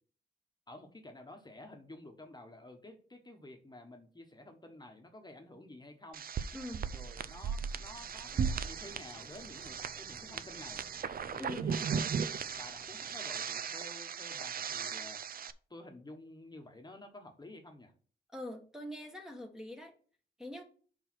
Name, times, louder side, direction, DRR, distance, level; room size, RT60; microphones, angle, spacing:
voice 1, 0.7-6.2 6.9-10.8 11.3-12.1 12.4-15.2 15.7-17.9, left 1 dB, 20° left, 4 dB, 1.2 m, -51 dB
sound 1, 6.1-15.5, right 6 dB, 50° right, 0.4 m, -37 dB
voice 2, 6.5-6.9 11.4-11.7 18.3-19.9 20.4-20.6, left 1 dB, 5° right, 1 dB, 1.2 m, -43 dB
sound 2, 8.3-13.5, right 1 dB, 20° right, 2.6 m, -59 dB
4.8 x 4.7 x 6.0 m, 0.42 s
cardioid pair, 85°, 20 cm